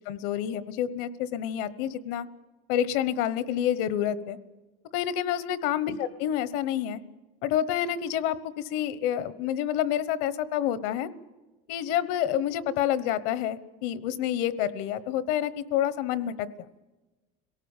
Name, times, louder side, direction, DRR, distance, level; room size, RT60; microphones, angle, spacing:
voice 1, 0.1-2.3 2.7-4.4 4.9-7.0 7.4-11.1 11.7-16.5, left 10 dB, 70° left, 16 dB, 1.1 m, -28 dB
26.5 x 18.0 x 7.3 m, 1.2 s
cardioid pair, 150°, 17 cm